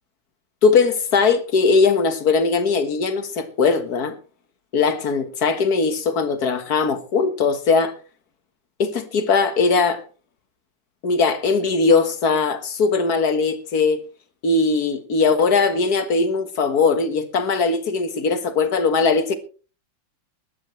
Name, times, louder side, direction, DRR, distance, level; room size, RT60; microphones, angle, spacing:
voice 1, 0.6-4.2 4.7-7.9 8.8-10.0 11.0-14.0 14.4-19.4, left 4 dB, 55° left, 1.9 m, -20 dB
21.0 x 12.0 x 3.2 m
omnidirectional pair, 2.1 m